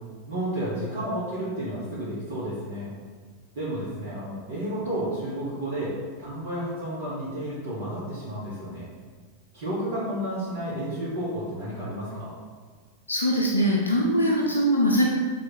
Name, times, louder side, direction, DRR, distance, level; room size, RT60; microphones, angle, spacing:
voice 1, 0.3-2.9 3.5-5.9 6.2-8.9 9.5-12.3, right 1 dB, 60° right, -9 dB, 1.6 m, -31 dB
voice 2, 13.1-15.1, equal, 80° left, -2 dB, 0.8 m, -22 dB
7.1 x 4.7 x 2.9 m, 1.5 s
figure-of-eight pair, 90°, 0 cm